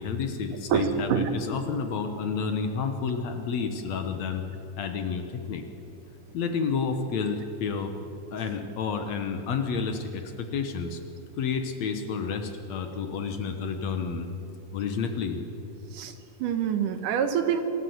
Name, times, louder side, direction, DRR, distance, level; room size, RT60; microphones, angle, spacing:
voice 1, 0.0-4.4 4.8-5.6 6.3-7.9 8.3-11.0 11.4-14.3 14.7-15.4, left 5 dB, 65° left, 7 dB, 2.1 m, -30 dB
voice 2, 0.7-1.3 15.9-16.1 16.4-17.6, right 8 dB, 75° right, 8 dB, 2.7 m, -26 dB
27.0 x 12.5 x 8.0 m, 2.9 s
omnidirectional pair, 3.8 m